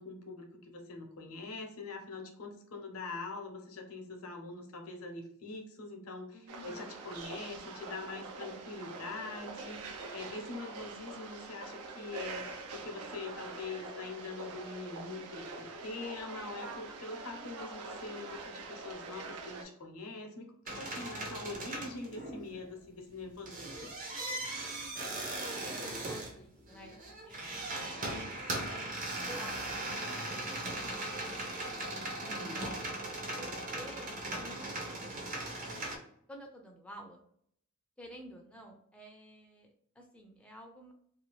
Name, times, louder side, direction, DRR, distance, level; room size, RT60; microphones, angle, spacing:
voice 1, 0.0-23.9 32.2-32.7, left 3 dB, 80° left, 3 dB, 0.7 m, -44 dB
voice 2, 6.3-6.9 24.5-25.0 25.5-28.9 29.3-31.5 32.5-33.1 33.4-35.3 36.3-37.2 38.0-40.9, equal, 5° left, 1 dB, 0.4 m, -52 dB
sound 1, 6.5-19.6, right 3 dB, 85° right, 0.5 m, -44 dB
sound 2, 20.7-22.7 23.2-36.0, right 2 dB, 40° right, 0.6 m, -39 dB
2.7 x 2.3 x 3.0 m, 0.68 s
head